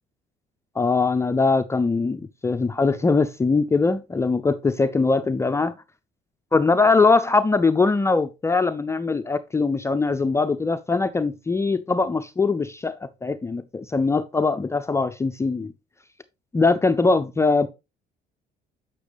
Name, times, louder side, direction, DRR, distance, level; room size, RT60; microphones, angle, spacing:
voice 1, 0.8-5.7 6.5-15.7 16.5-17.7, left 3 dB, 15° left, 0.4 m, -21 dB
7.9 x 5.9 x 3.3 m
cardioid pair, 110°, 17 cm